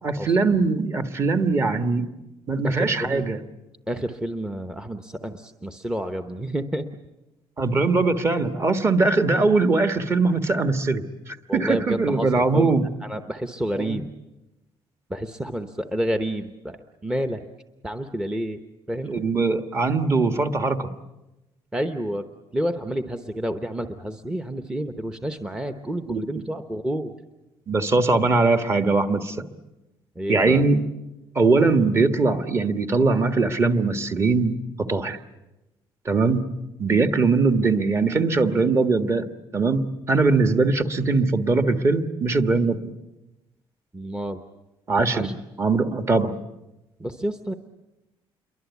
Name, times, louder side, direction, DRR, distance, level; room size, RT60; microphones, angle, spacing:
voice 1, 0.0-2.0 2.5-3.4 7.6-12.8 13.8-14.0 19.1-20.9 26.1-26.2 27.7-29.4 30.3-30.8 31.3-34.6 34.9-35.2 36.0-36.4 36.8-39.3 39.5-42.8 44.9-45.3 45.6-46.3, right 3 dB, 25° right, 8 dB, 1.4 m, -21 dB
voice 2, 2.6-3.2 3.9-6.9 11.5-12.7 13.0-14.1 15.1-16.8 17.0-17.4 17.8-18.6 18.9-19.2 21.7-22.3 22.5-27.1 30.2-30.6 43.9-44.4 45.1-45.4 47.0-47.5, equal, 5° right, 7 dB, 0.9 m, -29 dB
28.5 x 23.0 x 8.3 m, 0.99 s
cardioid pair, 165°, 10 cm